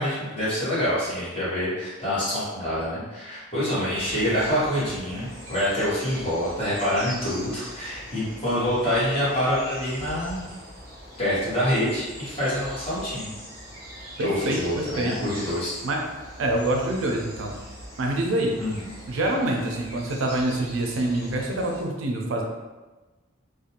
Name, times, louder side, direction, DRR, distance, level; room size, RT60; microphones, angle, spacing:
voice 1, 0.0-10.4 11.2-13.3 14.2-15.8 18.6-18.7, equal, 30° left, -10 dB, 1.1 m, -26 dB
sound 1, 3.9-21.8, equal, 15° right, 1.0 m, -42 dB
voice 2, 14.2-15.1 15.8-16.0 16.4-17.5 18.0-18.5 19.1-22.4, right 1 dB, 70° right, 1 dB, 0.4 m, -26 dB
2.5 x 2.1 x 2.8 m, 1.2 s
head